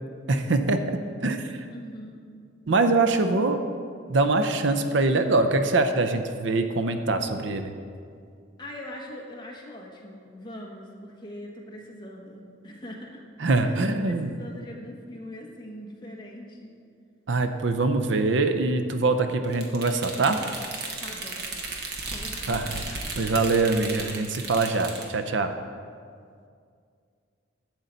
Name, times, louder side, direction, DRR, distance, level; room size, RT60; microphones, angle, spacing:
voice 1, 0.3-0.8 1.2-1.4 2.7-3.6 4.1-7.7 13.4-14.3 17.3-20.4 22.5-25.5, right 3 dB, 75° right, 8 dB, 0.6 m, -23 dB
voice 2, 0.8-1.2 1.7-2.2 8.6-13.3 13.6-16.7 19.0-19.4 21.0-21.6 22.1-22.6, left 1 dB, 25° left, -1 dB, 1.2 m, -42 dB
sound 1, 19.5-25.1, right 3 dB, 55° right, 1.2 m, -35 dB
11.5 x 7.9 x 4.0 m, 2.2 s
head